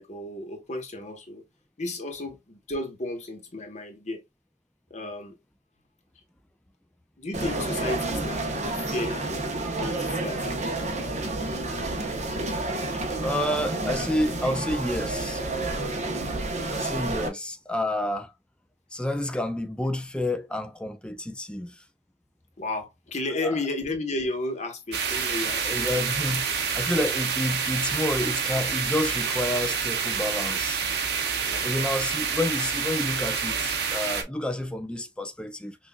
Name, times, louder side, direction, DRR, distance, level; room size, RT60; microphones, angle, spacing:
voice 1, 0.0-1.4 1.8-4.2 4.9-5.4 7.2-9.3 9.8-10.7 16.0-16.2 22.6-25.9 31.5-31.7, left 2 dB, 40° left, 1.1 m, -33 dB
sound 1, 7.3-17.3, right 2 dB, 40° right, 1.0 m, -30 dB
voice 2, 13.2-15.5 16.7-18.3 18.9-21.8 23.4-23.5 25.6-26.5 26.7-30.8 31.6-35.8, left 1 dB, 5° left, 0.5 m, -29 dB
sound 2, 24.9-34.2, right 6 dB, 65° right, 0.9 m, -28 dB
5.8 x 2.5 x 2.2 m
head